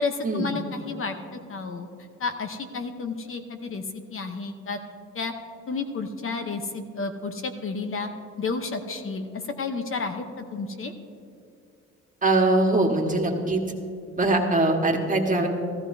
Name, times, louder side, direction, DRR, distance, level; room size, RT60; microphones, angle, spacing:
voice 1, 0.0-1.9 2.2-3.8 4.1-4.8 5.1-5.3 5.7-8.1 8.4-10.9, left 4 dB, 45° left, 6 dB, 0.9 m, -31 dB
voice 2, 12.2-13.6 14.2-15.5, right 2 dB, 25° right, 2 dB, 1.5 m, -22 dB
16.0 x 14.0 x 2.7 m, 2.4 s
cardioid pair, 90°, 30 cm